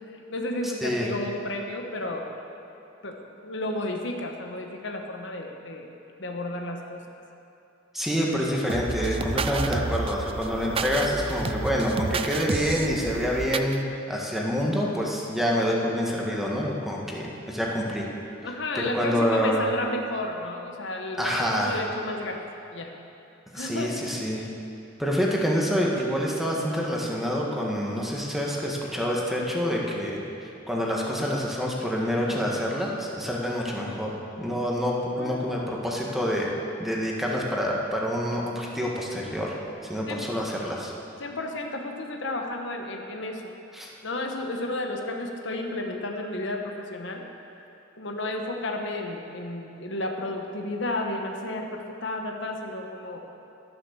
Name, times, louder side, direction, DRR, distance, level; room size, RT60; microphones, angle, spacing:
voice 1, 0.3-2.3 3.0-3.2 3.4-5.9 6.2-7.0 18.4-22.4 22.7-22.9 23.5-24.0 35.1-35.5 40.1-40.3 41.2-43.5 44.0-47.2 47.6-47.7 48.0-53.2, left 2 dB, 70° left, 3 dB, 1.2 m, -32 dB
voice 2, 7.9-13.8 14.1-18.1 18.8-19.7 21.2-21.8 23.5-24.5 25.0-36.5 36.8-39.5 39.8-40.9 43.7-43.9, equal, ahead, -3 dB, 1.6 m, -27 dB
sound 1, 8.7-13.8, right 4 dB, 30° right, 0.4 m, -30 dB
12.5 x 10.5 x 6.9 m, 2.7 s
head